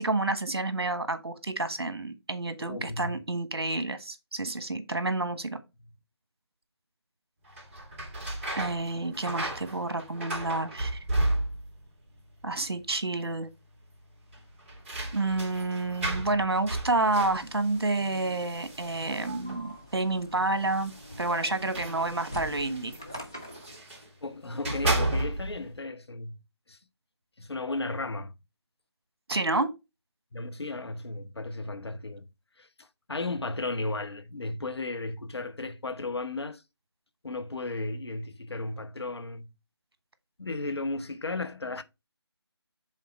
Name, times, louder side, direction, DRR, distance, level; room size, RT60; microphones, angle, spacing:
voice 1, 0.0-5.6 8.6-11.0 12.4-13.5 15.1-20.9 21.2-22.9 29.3-29.7, right 2 dB, 60° right, 1.3 m, -29 dB
voice 2, 2.6-3.2 9.0-9.2 24.2-26.4 26.7-26.8 27.4-28.3 30.3-32.3 32.6-36.6 37.2-39.5 40.4-41.8, left 2 dB, 70° left, 0.9 m, -35 dB
sound 1, 7.5-11.9 12.1-12.8 13.1-13.2 14.3-19.7 20.6-24.1 24.5-25.7, right 1 dB, 25° right, 1.9 m, -34 dB
sound 2, 17.2-23.8, equal, 10° left, 0.3 m, -45 dB
7.4 x 3.8 x 4.2 m
figure-of-eight pair, 155°, 14 cm